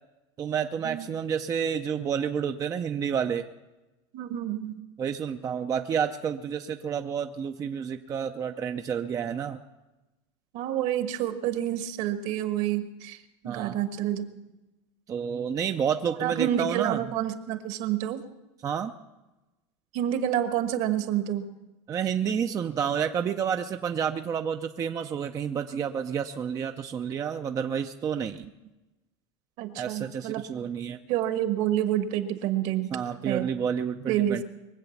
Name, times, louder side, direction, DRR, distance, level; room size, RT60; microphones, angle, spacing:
voice 1, 0.4-3.5 5.0-9.6 13.4-13.8 15.1-17.0 18.6-18.9 21.9-28.4 29.8-31.0 32.9-34.4, right 7 dB, 25° right, 7 dB, 0.5 m, -30 dB
voice 2, 4.1-4.8 10.5-13.2 13.4-14.3 16.2-18.2 19.9-21.5 29.6-30.4 31.1-32.9 33.2-33.5 34.1-34.4, right 11 dB, 55° right, 9 dB, 1.3 m, -28 dB
22.5 x 7.9 x 7.1 m, 1.1 s
supercardioid pair, 155°, 15 cm